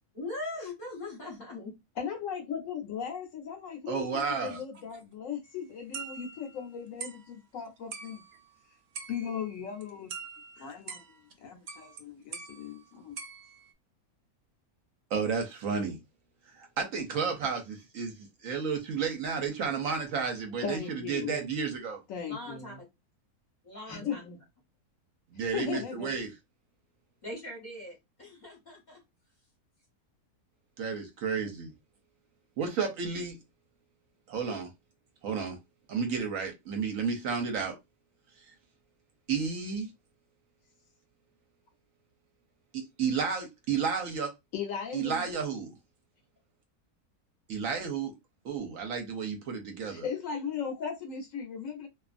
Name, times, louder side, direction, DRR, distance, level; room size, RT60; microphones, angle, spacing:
voice 1, 0.1-1.7 22.2-22.8 23.6-24.2 27.2-29.0, left 2 dB, 40° left, 0.8 m, -41 dB
voice 2, 2.0-8.2 9.1-10.1 10.6-11.1 11.4-13.1 20.6-21.5 22.1-22.8 23.9-24.4 25.5-26.1 44.5-45.3 49.9-51.9, left 7 dB, 70° left, 0.9 m, -37 dB
voice 3, 3.9-4.6 15.1-16.0 16.6-22.0 25.3-26.3 30.8-31.7 32.6-33.4 34.3-34.7 35.2-35.6 35.9-37.8 39.3-39.9 42.7-44.3 44.9-45.7 47.5-48.1 48.4-50.1, right 6 dB, 70° right, 0.9 m, -32 dB
sound 1, 5.9-6.7 7.0-7.3 7.9-8.5 9.0-9.6 9.8-11.3 11.7-12.0 12.3-13.7, right 5 dB, 85° right, 0.5 m, -44 dB
2.5 x 2.3 x 2.4 m
omnidirectional pair, 1.6 m